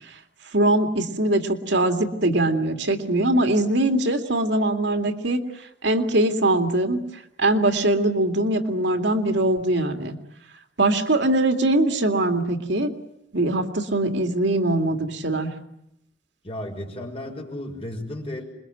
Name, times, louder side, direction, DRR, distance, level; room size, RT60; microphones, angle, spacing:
voice 1, 0.5-5.4 5.8-7.0 7.4-10.2 10.8-12.9 13.3-15.5, right 1 dB, 70° right, 5 dB, 2.4 m, -22 dB
voice 2, 16.4-18.4, left 1 dB, 30° left, 2 dB, 5.9 m, -33 dB
27.0 x 22.5 x 9.2 m, 0.82 s
head